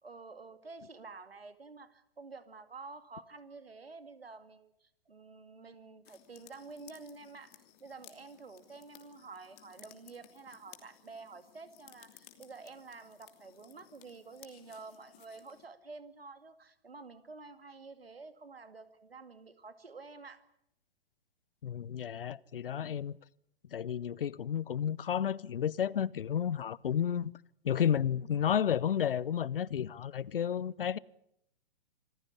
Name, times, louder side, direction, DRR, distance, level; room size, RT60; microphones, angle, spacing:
voice 1, 0.0-20.4 22.7-23.0, right 4 dB, 85° right, 2.3 m, -50 dB
sound 1, 6.0-15.7, left 13 dB, 40° left, 3.0 m, -59 dB
voice 2, 21.6-23.2 23.7-27.3 27.6-31.0, left 9 dB, 70° left, 0.8 m, -32 dB
26.5 x 15.0 x 10.0 m
figure-of-eight pair, 115°, 29 cm